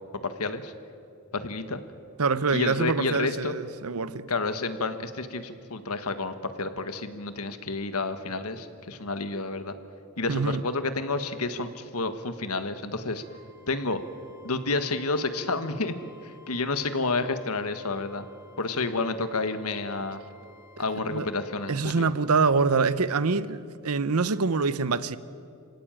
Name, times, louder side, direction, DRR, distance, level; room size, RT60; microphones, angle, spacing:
voice 1, 0.1-0.7 1.3-1.8 2.5-3.5 4.3-9.7 10.2-13.2 13.7-14.0 14.4-18.2 18.6-20.2 20.8-22.1, left 3 dB, 90° left, 1.5 m, -30 dB
voice 2, 2.2-4.3 10.3-10.6 21.1-21.3 21.7-25.2, right 4 dB, 85° right, 0.8 m, -25 dB
Wind instrument woodwind instrument, 13.2-21.8, left 2 dB, 35° left, 2.0 m, -55 dB
27.5 x 17.0 x 9.0 m
head